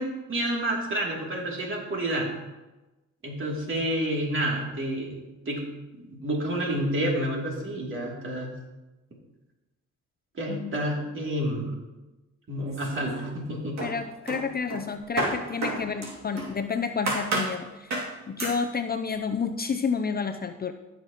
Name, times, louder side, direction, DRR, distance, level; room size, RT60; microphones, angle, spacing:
voice 1, 0.0-2.3 3.2-5.7 6.0-8.5 10.3-11.7 12.5-13.8, right 1 dB, 40° right, -2 dB, 2.8 m, -29 dB
voice 2, 10.5-10.8 13.8-17.9 18.3-20.7, left 5 dB, 30° left, 7 dB, 0.5 m, -30 dB
sound 1, 12.7-13.4 13.8-16.6 17.1-17.6 17.9-18.1 18.4-18.6, right 2 dB, 60° right, 2.7 m, -31 dB
15.5 x 6.5 x 3.0 m, 1.1 s
cardioid pair, 90°, 30 cm